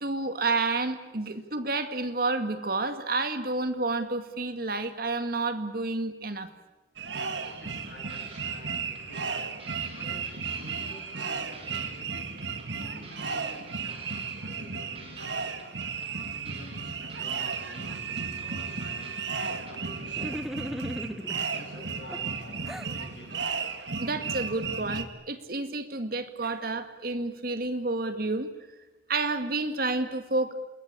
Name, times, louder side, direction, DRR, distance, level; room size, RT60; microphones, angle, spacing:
voice 1, 0.0-6.5 24.0-28.5 29.1-30.5, right 3 dB, 55° right, 9 dB, 2.1 m, -30 dB
sound 1, 7.0-25.0, right 5 dB, 80° right, 2.2 m, -34 dB
sound 2, 7.4-7.8 8.1-11.3 11.5-14.7 14.9-19.7, right 3 dB, 35° right, 5.0 m, -51 dB
voice 2, 7.6-15.5 16.2-19.3 19.7-20.5 20.8-23.7, left 1 dB, 70° left, -5 dB, 7.5 m, -50 dB
sound 3, 20.1-21.5 22.1-22.9, equal, ahead, 0.9 m, -36 dB
28.5 x 21.5 x 8.5 m, 1.1 s
head